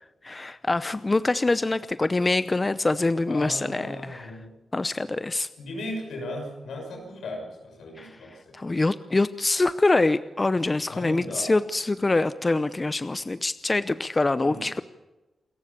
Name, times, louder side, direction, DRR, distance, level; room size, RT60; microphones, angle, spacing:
voice 1, 0.2-4.4 4.7-5.5 8.0-14.8, left 2 dB, 30° left, 14 dB, 0.7 m, -25 dB
voice 2, 3.3-4.5 5.6-8.6 10.9-11.5 14.4-14.6, left 1 dB, 90° left, 2 dB, 6.6 m, -37 dB
28.0 x 14.5 x 6.9 m, 1.1 s
cardioid pair, 55°, 0 cm